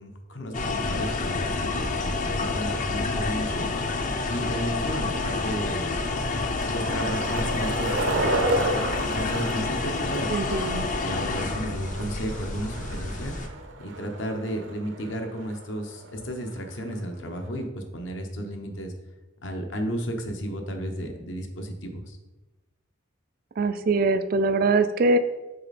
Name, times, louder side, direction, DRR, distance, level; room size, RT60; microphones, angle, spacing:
voice 1, 0.0-3.7 4.3-6.0 6.7-8.5 9.1-10.3 11.0-13.3 13.8-18.9 19.4-22.2, equal, 70° left, 4 dB, 0.9 m, -33 dB
sound 1, 0.5-13.5, left 3 dB, 40° left, 0.6 m, -29 dB
Skateboard, 2.5-17.7, right 2 dB, 75° right, 0.7 m, -34 dB
voice 2, 10.3-10.9 23.6-25.2, right 3 dB, 50° right, 10 dB, 0.4 m, -22 dB
6.7 x 4.1 x 4.2 m, 1.1 s
head